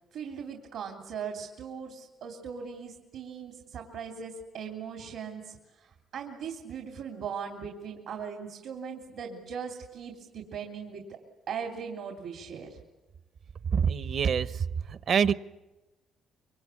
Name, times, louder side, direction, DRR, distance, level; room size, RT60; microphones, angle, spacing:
voice 1, 0.1-11.2 11.5-12.8, right 6 dB, 80° right, 2 dB, 3.2 m, -39 dB
voice 2, 13.7-15.3, right 7 dB, 60° right, 14 dB, 0.9 m, -26 dB
25.5 x 23.5 x 8.5 m, 1.0 s
cardioid pair, 90°, 0 cm